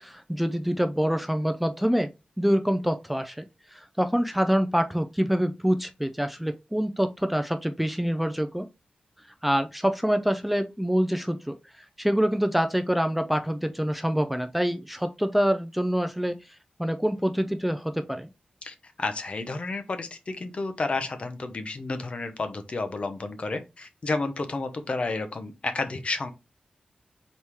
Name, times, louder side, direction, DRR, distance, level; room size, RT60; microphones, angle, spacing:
voice 1, 0.0-2.1 2.4-3.4 3.7-8.7 9.4-16.4 16.8-18.3, equal, 5° right, 0.3 m, -26 dB
voice 2, 18.6-26.3, left 3 dB, 45° left, 0.7 m, -31 dB
4.2 x 3.1 x 3.4 m
wide cardioid pair, 125°, 3 cm